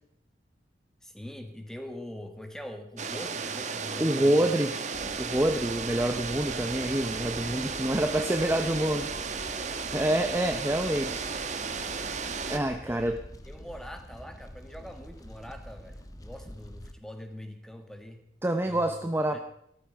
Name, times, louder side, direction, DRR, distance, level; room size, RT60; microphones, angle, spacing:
voice 1, 1.0-4.5 5.0-5.1 7.4-9.2 12.8-13.1 13.4-18.2 18.6-19.4, left 1 dB, 5° left, 6 dB, 1.7 m, -44 dB
sound 1, 3.0-12.6, right 5 dB, 40° right, 1.2 m, -34 dB
voice 2, 4.0-4.7 5.2-9.1 9.6-11.5 12.5-13.2 18.4-19.4, right 1 dB, 15° right, 6 dB, 0.7 m, -27 dB
Fire, 4.9-16.9, equal, 20° left, 1.1 m, -46 dB
15.0 x 14.0 x 5.2 m, 0.75 s
head